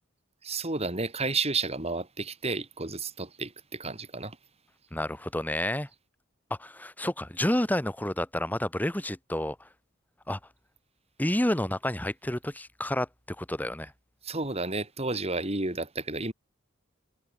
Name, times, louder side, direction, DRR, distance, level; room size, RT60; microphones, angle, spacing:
voice 1, 0.4-4.4 14.2-16.3, right 3 dB, 30° right, 4.1 m, -31 dB
voice 2, 4.9-5.9 6.6-9.6 10.3-10.4 11.2-13.9, left 1 dB, 10° left, 1.3 m, -30 dB
head